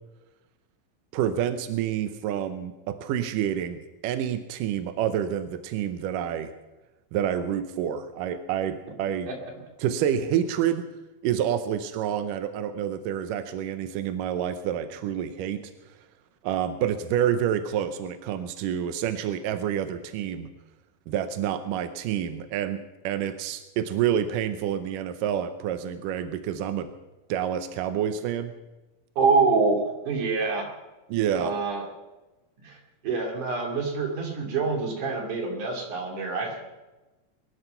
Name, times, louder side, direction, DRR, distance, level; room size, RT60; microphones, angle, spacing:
voice 1, 1.1-6.5 7.1-9.3 9.8-10.9 11.2-15.7 16.4-20.5 21.1-26.9 27.3-28.5 31.1-31.5, right 9 dB, 80° right, 9 dB, 2.0 m, -28 dB
voice 2, 29.2-30.7 31.3-31.9 32.6-32.8 33.0-36.6, right 4 dB, 55° right, 1 dB, 3.8 m, -26 dB
22.0 x 11.5 x 5.7 m, 1.1 s
omnidirectional pair, 4.7 m